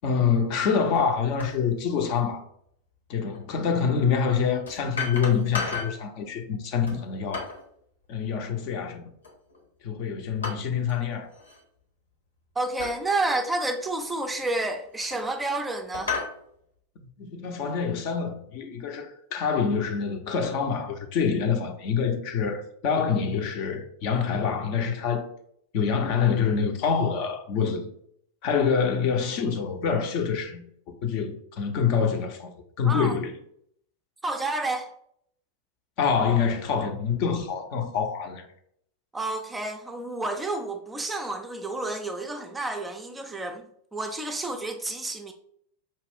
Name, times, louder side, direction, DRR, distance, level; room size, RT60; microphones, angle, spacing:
voice 1, 0.0-2.4 3.1-7.5 8.1-9.1 9.8-11.3 17.2-25.3 25.7-27.9 28.4-30.6 31.0-33.3 36.0-38.5, left 6 dB, 45° left, 0.6 m, -26 dB
sound 1, 0.9-1.1 1.4-1.6 3.3-3.4 4.7-6.0 6.8-7.7 9.2-9.6 10.4-11.1 11.3-11.6 12.8-13.0 13.6-13.7 14.7-15.5 15.9-16.4, left 4 dB, 75° left, 1.1 m, -34 dB
voice 2, 12.6-16.2 32.9-33.1 34.2-34.9 39.1-43.6 43.9-45.3, right 2 dB, 10° right, 0.4 m, -30 dB
5.3 x 2.4 x 3.4 m
figure-of-eight pair, 90°, 0 cm